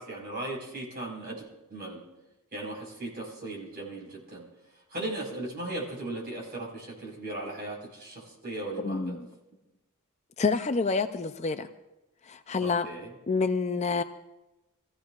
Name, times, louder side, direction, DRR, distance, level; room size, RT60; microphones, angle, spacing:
voice 1, 0.0-1.4 1.7-2.0 2.5-4.4 4.9-9.2 12.6-13.1, right 2 dB, 45° right, -2 dB, 4.6 m, -37 dB
voice 2, 8.8-9.3 10.4-11.7 12.3-12.9 13.3-14.0, left 4 dB, 30° left, 9 dB, 0.4 m, -28 dB
24.5 x 15.5 x 2.4 m, 0.98 s
head